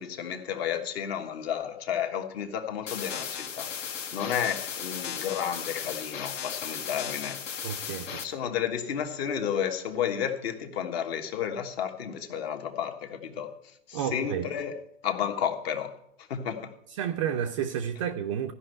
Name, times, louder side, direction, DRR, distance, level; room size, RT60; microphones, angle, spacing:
voice 1, 0.0-3.7 4.1-7.4 8.2-14.8 15.0-16.7, left 8 dB, 50° left, 1.4 m, -32 dB
sound 1, 2.9-8.2, left 7 dB, 70° left, 1.4 m, -36 dB
voice 2, 7.6-8.2 13.9-14.5 17.0-18.5, right 9 dB, 25° right, 0.4 m, -31 dB
13.0 x 5.5 x 7.7 m
hypercardioid pair, 140°, 38 cm